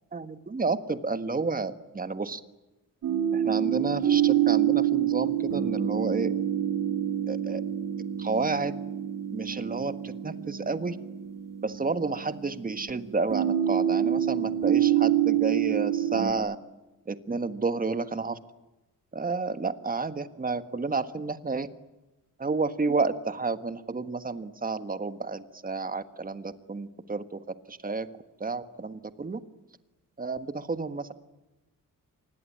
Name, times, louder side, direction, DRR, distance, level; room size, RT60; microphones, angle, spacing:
voice 1, 0.1-2.4 3.3-6.3 7.3-7.6 8.2-8.7 9.3-11.0 11.6-16.6 17.1-18.4 19.1-21.7 22.4-27.4 27.7-28.1 28.4-29.4 30.2-31.1, right 4 dB, 25° right, 11 dB, 1.6 m, -31 dB
sound 1, 3.0-16.3, right 10 dB, 70° right, 2.5 m, -27 dB
26.0 x 21.0 x 9.9 m, 1.0 s
cardioid pair, 110°, 33 cm